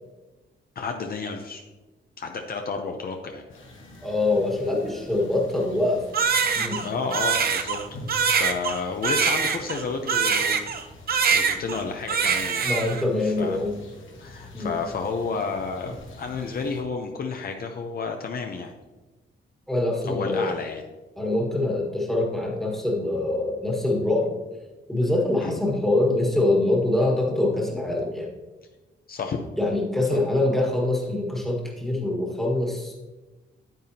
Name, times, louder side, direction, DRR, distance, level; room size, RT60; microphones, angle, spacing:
voice 1, 0.8-1.6 2.2-3.4 6.8-7.8 8.3-10.6 11.3-12.7 13.2-13.6 14.2-18.7 20.0-20.8 25.4-25.5 29.1-29.4 30.1-30.2, left 4 dB, 50° left, 4 dB, 0.7 m, -31 dB
sound 1, 3.5-16.8, left 1 dB, 80° left, 1.6 m, -46 dB
voice 2, 4.0-6.1 6.5-6.8 12.6-13.8 14.5-14.7 19.7-20.5 21.2-24.3 24.9-28.3 29.6-32.9, left 2 dB, ahead, -2 dB, 1.5 m, -24 dB
Crying sobbing, 6.1-10.8 11.1-11.8 12.1-13.0, right 6 dB, 50° right, 0.6 m, -23 dB
9.3 x 9.0 x 2.8 m, 1.2 s
wide cardioid pair, 170°, 20 cm